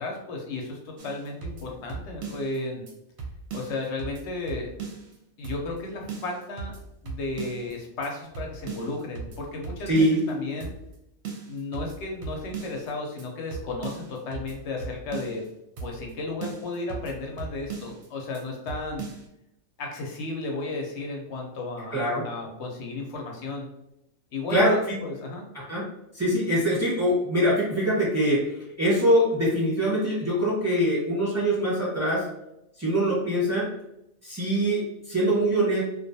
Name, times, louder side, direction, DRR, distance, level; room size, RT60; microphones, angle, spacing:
voice 1, 0.0-2.9 3.5-4.7 5.4-6.7 7.0-10.7 11.5-15.4 15.8-19.1 19.8-22.0 22.2-23.7 24.3-24.7 25.0-25.4, left 2 dB, 65° left, 0 dB, 0.8 m, -34 dB
sound 1, 1.0-2.6 2.9-3.0 3.2-5.2 5.4-5.8 6.1-7.7 8.0-8.1 8.3-10.3 10.6-11.0 11.2-12.9 13.2-13.3 13.5-15.5 15.8-16.1 16.4-18.1 18.3-18.4 18.7-19.3, right 5 dB, 65° right, 0.8 m, -38 dB
voice 2, 9.9-10.2 21.9-22.2 24.5-25.0 25.5-25.9 26.1-28.5 28.8-32.3 32.8-33.7 34.2-35.8, equal, 15° right, -7 dB, 1.0 m, -23 dB
2.4 x 2.3 x 2.6 m, 0.84 s
omnidirectional pair, 1.4 m